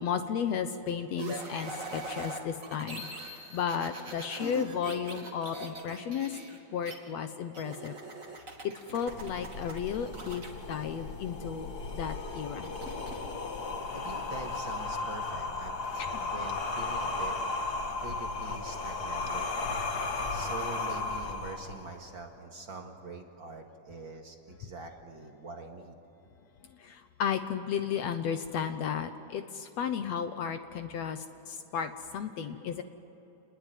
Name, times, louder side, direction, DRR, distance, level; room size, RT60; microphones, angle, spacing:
voice 1, 0.0-6.4 6.7-7.9 8.6-12.7 16.0-16.3 26.8-32.8, left 7 dB, 75° left, 8 dB, 1.5 m, -34 dB
sound 1, 1.2-6.9 7.5-10.5 12.6-13.3, right 2 dB, 25° right, 2.6 m, -42 dB
sound 2, 9.1-22.1, left 3 dB, 50° left, 1.2 m, -35 dB
voice 2, 13.6-16.0 16.3-17.4 18.0-19.8 20.3-26.0, right 3 dB, 40° right, 2 dB, 2.1 m, -44 dB
28.5 x 21.0 x 9.3 m, 2.9 s
omnidirectional pair, 4.3 m